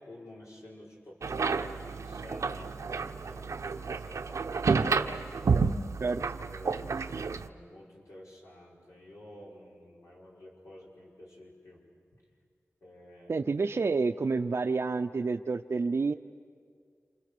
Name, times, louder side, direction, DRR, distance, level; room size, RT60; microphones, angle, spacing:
voice 1, 0.0-5.3 6.5-11.8 12.8-13.4, left 1 dB, 90° left, -4 dB, 5.5 m, -50 dB
sound 1, 1.2-7.5, right 4 dB, 90° right, 0.9 m, -30 dB
voice 2, 13.3-16.1, right 4 dB, 60° right, 6 dB, 0.6 m, -29 dB
28.5 x 28.0 x 6.7 m, 2.1 s
wide cardioid pair, 95°, 5 cm